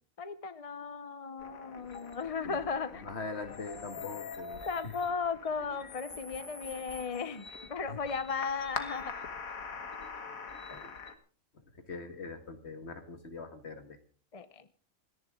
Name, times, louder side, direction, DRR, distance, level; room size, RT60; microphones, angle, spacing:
voice 1, 0.2-3.0 4.7-9.1 14.3-14.6, left 5 dB, 30° left, 12 dB, 0.7 m, -36 dB
sound 1, 1.4-11.2, left 5 dB, 80° left, 1.8 m, -44 dB
voice 2, 2.9-4.9 7.9-8.0 10.7-10.9 11.5-14.0, left 4 dB, 50° left, 7 dB, 2.0 m, -42 dB
27.5 x 10.5 x 3.7 m, 0.41 s
omnidirectional pair, 1.4 m